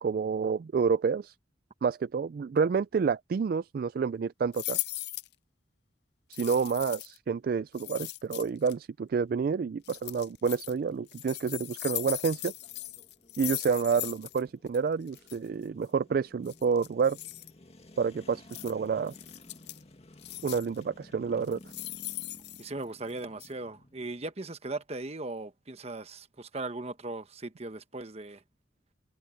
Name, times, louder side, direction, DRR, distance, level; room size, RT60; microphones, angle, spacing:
voice 1, 0.0-1.3 1.8-4.8 6.3-12.5 13.4-17.2 18.0-19.1 20.4-21.6, right 5 dB, 50° right, 0.3 m, -29 dB
sound 1, 4.5-5.3 6.3-7.2 7.7-8.7 9.8-10.7 11.1-14.4 14.7-14.8 15.1-15.4 16.5-17.5 18.5-18.7 19.1-19.8 20.2-20.8 21.4-23.1 23.4-23.5, left 17 dB, 60° left, 0.6 m, -38 dB
sound 2, 9.1-24.2, left 1 dB, 35° left, 2.0 m, -56 dB
voice 2, 22.6-28.4, right 2 dB, 35° right, 1.1 m, -38 dB
head